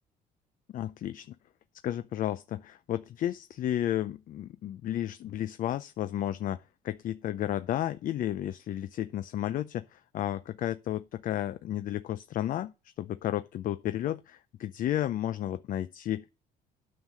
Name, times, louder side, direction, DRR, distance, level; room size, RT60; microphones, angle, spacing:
voice 1, 0.7-1.3 1.8-12.7 13.0-16.3, left 12 dB, 55° left, 0.5 m, -32 dB
9.3 x 5.7 x 7.4 m
cardioid pair, 110°, 17 cm